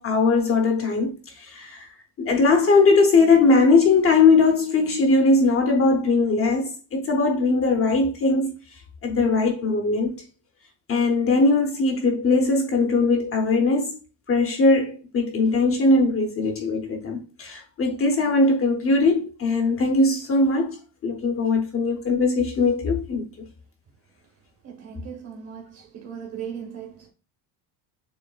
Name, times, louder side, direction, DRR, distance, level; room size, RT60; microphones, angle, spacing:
voice 1, 0.0-1.9 2.2-8.5 9.0-10.1 10.9-14.0 14.3-20.8 21.0-23.2, left 3 dB, 30° left, 0.7 m, -20 dB
voice 2, 24.6-27.1, right 8 dB, 35° right, 1.0 m, -38 dB
6.9 x 3.1 x 2.3 m
cardioid pair, 155°, 44 cm